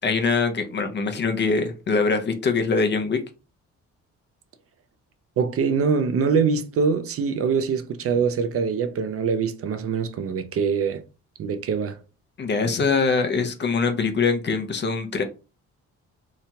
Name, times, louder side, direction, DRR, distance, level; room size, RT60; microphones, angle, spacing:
voice 1, 0.0-3.2 12.4-15.2, left 4 dB, 35° left, 0.6 m, -23 dB
voice 2, 5.4-11.0 11.4-12.0, right 5 dB, 50° right, 0.4 m, -23 dB
2.8 x 2.2 x 2.8 m
cardioid pair, 90°, 30 cm